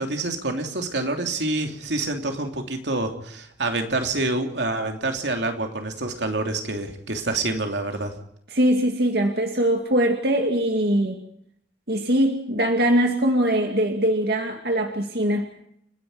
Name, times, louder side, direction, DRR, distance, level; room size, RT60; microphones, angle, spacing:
voice 1, 0.0-8.1, right 2 dB, 80° right, 4 dB, 3.0 m, -27 dB
voice 2, 8.5-11.2 11.9-15.4, right 1 dB, 60° right, 3 dB, 2.3 m, -22 dB
30.0 x 10.5 x 9.6 m, 0.72 s
head